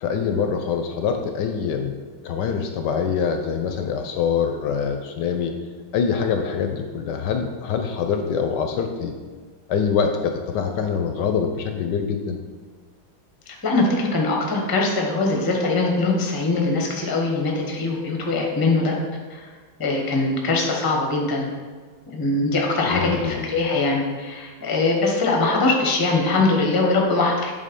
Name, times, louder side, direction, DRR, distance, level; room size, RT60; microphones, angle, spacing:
voice 1, 0.0-1.9 2.2-5.5 5.9-9.1 9.7-12.4 22.8-23.4, left 6 dB, 75° left, 5 dB, 1.0 m, -24 dB
voice 2, 13.5-18.9 19.3-19.4 19.8-21.5 22.1-27.5, left 3 dB, 25° left, 0 dB, 0.4 m, -22 dB
8.5 x 3.7 x 5.2 m, 1.5 s
omnidirectional pair, 2.3 m